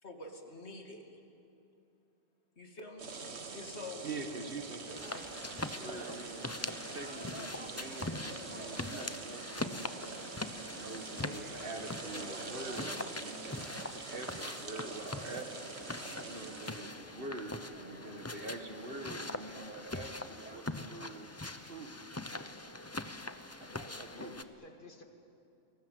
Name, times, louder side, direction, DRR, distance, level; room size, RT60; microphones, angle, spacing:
voice 1, 0.0-1.2 2.6-3.1 3.5-4.1, left 2 dB, 80° left, 3 dB, 2.9 m, -46 dB
sound 1, 3.0-16.9, right 4 dB, 75° right, 1.7 m, -45 dB
voice 2, 4.0-5.0 5.8-10.4 10.7-15.6 16.2-21.3 21.6-22.0 23.6-23.7 24.0-24.4, right 2 dB, 55° right, 6 dB, 1.9 m, -45 dB
sound 2, 4.8-20.6, right 1 dB, 10° right, 1.0 m, -54 dB
sound 3, 4.9-24.4, left 2 dB, 15° left, 0.8 m, -43 dB
voice 3, 23.7-25.0, left 2 dB, 50° left, 5 dB, 2.2 m, -52 dB
29.5 x 22.0 x 7.7 m, 2.7 s
omnidirectional pair, 1.1 m